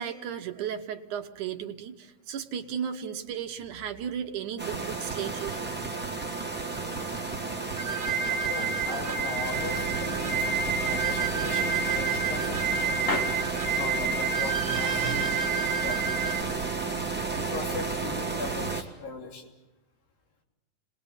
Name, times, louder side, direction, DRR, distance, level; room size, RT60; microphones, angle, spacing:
voice 1, 0.0-5.6, right 8 dB, 70° right, 5 dB, 2.3 m, -35 dB
sound 1, 4.6-18.8, right 4 dB, 5° right, 1.3 m, -32 dB
sound 2, 6.7-7.9 8.3-9.7 10.1-10.9 11.2-11.4 11.9-12.7 13.0-14.4, left 2 dB, 45° left, 0.7 m, -39 dB
sound 3, 7.8-16.4, right 5 dB, 40° right, 1.1 m, -30 dB
voice 2, 8.5-13.0 13.7-15.5 15.8-16.3 17.4-19.4, left 3 dB, 80° left, 1 dB, 5.0 m, -39 dB
29.5 x 21.0 x 7.2 m, 1.0 s
omnidirectional pair, 4.0 m